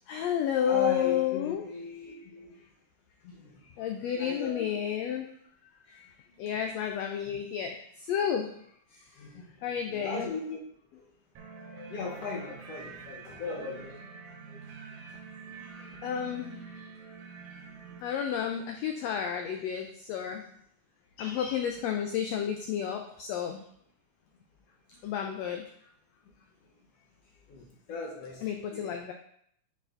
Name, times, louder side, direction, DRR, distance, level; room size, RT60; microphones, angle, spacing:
voice 1, 0.1-1.7 3.8-5.3 6.4-7.7 8.1-8.5 9.6-10.3 16.0-16.6 18.0-20.4 21.2-23.6 25.0-25.6 28.4-29.1, left 9 dB, 85° left, 4 dB, 1.5 m, -31 dB
voice 2, 0.6-2.7 3.2-3.6 4.1-4.7 5.1-5.2 5.9-6.1 6.4-6.6 9.2-10.6 10.9-11.0 11.7-14.1 14.5-14.6 14.9-15.0 15.5-16.0 21.2-21.6 27.5-29.0, left 3 dB, 65° left, -2 dB, 1.8 m, -39 dB
sound 1, 11.4-18.0, right 5 dB, 70° right, 1.9 m, -46 dB
8.2 x 4.9 x 2.5 m, 0.68 s
omnidirectional pair, 3.5 m